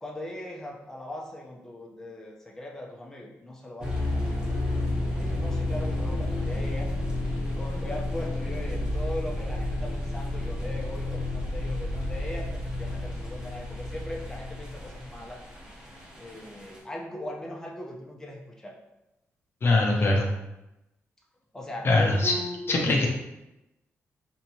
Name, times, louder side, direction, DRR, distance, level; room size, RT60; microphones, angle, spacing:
voice 1, 0.0-4.4 5.2-6.9 7.6-15.4 16.2-18.7 19.6-20.3 21.5-23.1, left 1 dB, 10° left, -2 dB, 0.7 m, -39 dB
sound 1, 3.8-16.8, left 1 dB, 15° right, 1.0 m, -31 dB
voice 2, 19.6-20.2 21.8-22.3 22.7-23.1, left 2 dB, 50° left, 1 dB, 0.6 m, -22 dB
3.5 x 2.8 x 2.9 m, 0.93 s
cardioid pair, 85°, 5 cm